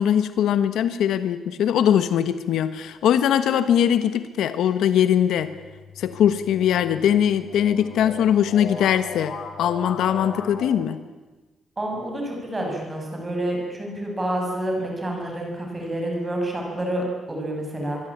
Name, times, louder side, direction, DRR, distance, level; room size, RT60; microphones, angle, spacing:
voice 1, 0.0-5.5 6.0-9.3 9.6-11.0, left 9 dB, 85° left, 11 dB, 1.2 m, -21 dB
sound 1, 5.4-10.7, left 4 dB, 55° left, 5.1 m, -38 dB
voice 2, 11.8-18.0, right 1 dB, 15° right, 1 dB, 7.1 m, -28 dB
25.5 x 22.5 x 8.8 m, 1.2 s
cardioid pair, 175°, 0 cm